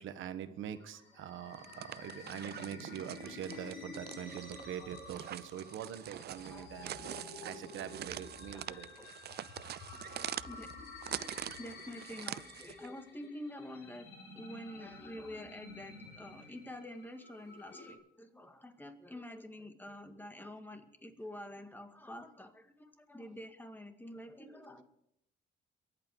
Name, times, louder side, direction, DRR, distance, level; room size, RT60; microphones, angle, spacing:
voice 1, 0.0-8.9, right 9 dB, 80° right, 10 dB, 1.3 m, -44 dB
sound 1, 0.7-17.9, left 4 dB, 85° left, 3.6 m, -51 dB
sound 2, 1.5-12.9, right 12 dB, 55° right, 0.4 m, -45 dB
voice 2, 6.5-7.1 7.7-7.8 8.1-8.2 8.5-9.4 9.9-10.0 10.4-10.7 11.6-14.1 14.3-24.8, left 1 dB, 10° left, 6 dB, 2.1 m, -48 dB
23.0 x 8.6 x 4.9 m, 0.77 s
cardioid pair, 90°, 20 cm